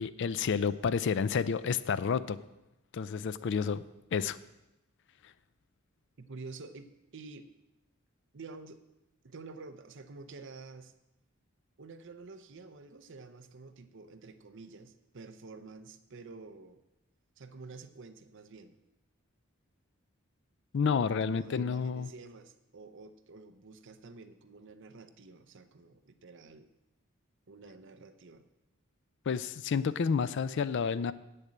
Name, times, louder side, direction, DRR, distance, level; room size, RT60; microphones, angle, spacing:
voice 1, 0.0-2.4 2.9-3.8 4.1-4.4 20.7-22.1 29.3-31.1, left 6 dB, 60° left, 15 dB, 0.4 m, -30 dB
voice 2, 6.2-7.5 8.3-8.8 9.2-10.9 11.8-16.8 17.4-18.8 21.2-26.7 27.5-28.5, right 3 dB, 60° right, 9 dB, 0.7 m, -49 dB
8.7 x 6.7 x 8.5 m, 0.93 s
head